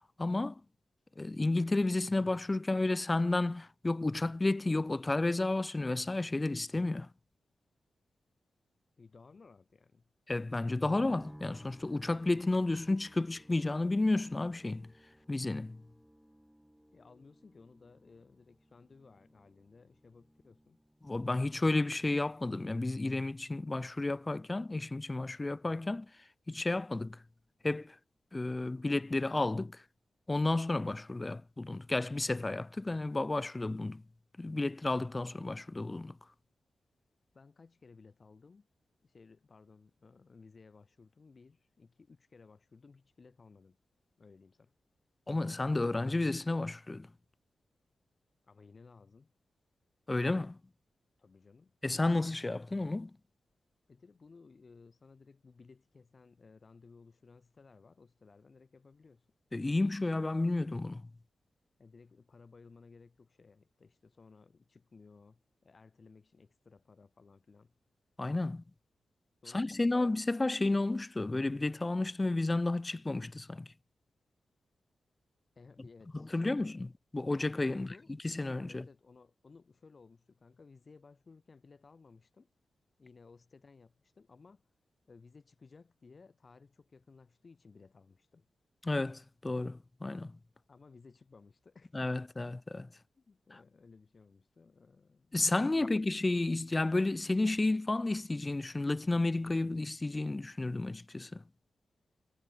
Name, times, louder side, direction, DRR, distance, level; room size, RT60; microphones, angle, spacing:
voice 1, 0.2-0.6 1.2-7.1 10.3-14.9 15.3-15.8 21.0-26.1 26.5-27.2 27.6-28.0 28.3-29.8 30.3-34.0 34.4-36.2 45.3-47.1 50.1-50.6 51.8-53.1 59.5-61.0 68.2-68.6 69.5-73.7 76.3-76.9 77.1-77.9 78.2-78.8 88.8-90.4 91.9-92.9 95.3-101.4, left 2 dB, 15° left, 0.3 m, -32 dB
voice 2, 9.0-10.1 16.9-20.8 37.3-38.7 39.0-43.8 44.2-44.7 48.4-49.3 51.2-51.7 53.9-59.3 61.8-67.7 69.4-70.1 75.5-76.9 77.7-78.1 78.7-82.5 83.0-84.6 85.1-88.5 90.7-92.0 93.1-95.4 95.7-96.0, left 4 dB, 30° left, 6.7 m, -58 dB
sound 1, 11.1-26.3 26.6-27.4, equal, 5° right, 1.8 m, -60 dB
wide cardioid pair, 165°, 0 cm